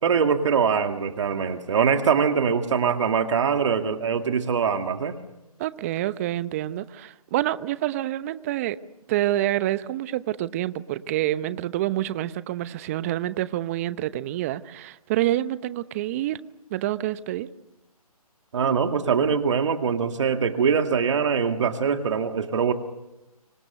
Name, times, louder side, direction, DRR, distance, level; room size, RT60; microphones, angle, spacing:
voice 1, 0.0-5.1 18.5-22.7, right 6 dB, 50° right, 6 dB, 2.2 m, -23 dB
voice 2, 5.6-8.8 9.1-16.4 16.7-17.5, right 14 dB, 25° right, 15 dB, 0.8 m, -27 dB
25.5 x 25.0 x 6.8 m, 0.96 s
figure-of-eight pair, 150°, 20 cm